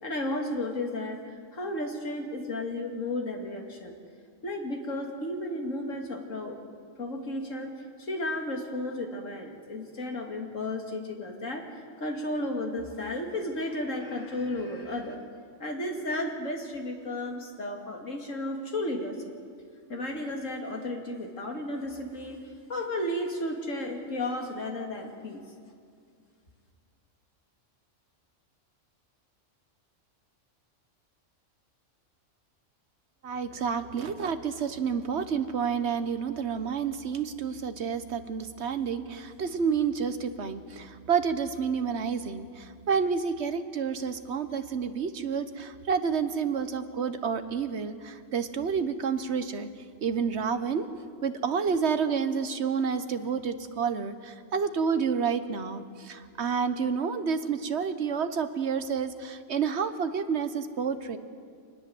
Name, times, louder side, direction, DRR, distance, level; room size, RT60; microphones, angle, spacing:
voice 1, 0.0-1.2 1.5-4.0 4.4-6.6 7.0-7.7 8.0-11.7 12.0-15.2 15.6-19.3 19.9-22.4 22.7-25.4, left 1 dB, 90° left, 2 dB, 2.8 m, -33 dB
voice 2, 33.2-49.7 50.0-50.9 51.2-61.2, right 6 dB, 60° right, 10 dB, 1.4 m, -29 dB
24.5 x 20.0 x 7.8 m, 2.2 s
omnidirectional pair, 1.3 m